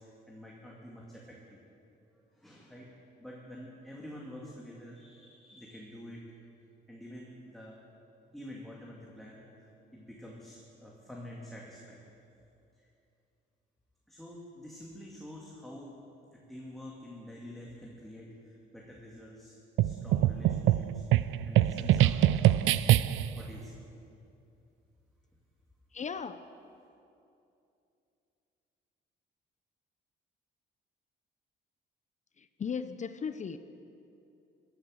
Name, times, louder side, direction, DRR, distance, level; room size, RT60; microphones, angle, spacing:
voice 1, 0.0-1.6 2.3-2.9 3.2-6.2 6.9-7.8 8.3-12.0 12.8-12.9 14.1-15.9 16.3-19.6 19.8-23.9, left 1 dB, ahead, -4 dB, 2.2 m, -48 dB
sound 1, 19.8-23.4, right 13 dB, 80° right, 0.4 m, -24 dB
voice 2, 25.9-26.4 32.4-33.6, left 6 dB, 35° left, 11 dB, 0.6 m, -36 dB
15.0 x 11.5 x 6.4 m, 2.7 s
cardioid pair, 90°, 20 cm